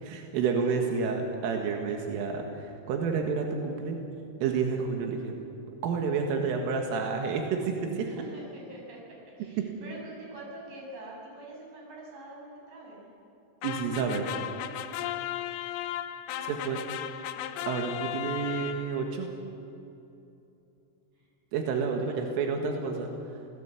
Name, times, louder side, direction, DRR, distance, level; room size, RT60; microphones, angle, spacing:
voice 1, 0.0-4.0 4.4-5.3 5.8-8.0 13.6-14.3 16.5-16.8 17.7-19.3 21.5-23.1, right 5 dB, 90° right, 3 dB, 4.4 m, -29 dB
voice 2, 8.0-9.0 9.4-13.1 15.4-15.8 16.3-17.6 21.1-21.3 22.0-22.7, right 1 dB, 45° right, -2 dB, 8.0 m, -46 dB
sound 1, 13.6-19.1, left 12 dB, 80° left, 3.5 m, -36 dB
27.0 x 18.5 x 8.3 m, 2.8 s
omnidirectional pair, 5.7 m